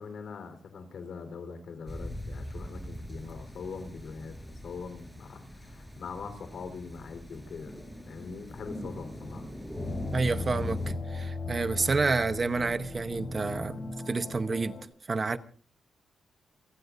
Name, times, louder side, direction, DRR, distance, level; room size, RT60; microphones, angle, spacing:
voice 1, 0.0-4.4 4.6-7.7 8.1-9.5, left 5 dB, 65° left, 4.1 m, -42 dB
sound 1, 1.9-10.9, equal, 5° left, 5.4 m, -41 dB
sound 2, 9.7-14.8, left 3 dB, 45° left, 3.7 m, -37 dB
voice 2, 10.1-14.8 15.1-15.4, right 4 dB, 35° right, 0.9 m, -29 dB
28.5 x 18.0 x 2.7 m
cardioid pair, 115°, 0 cm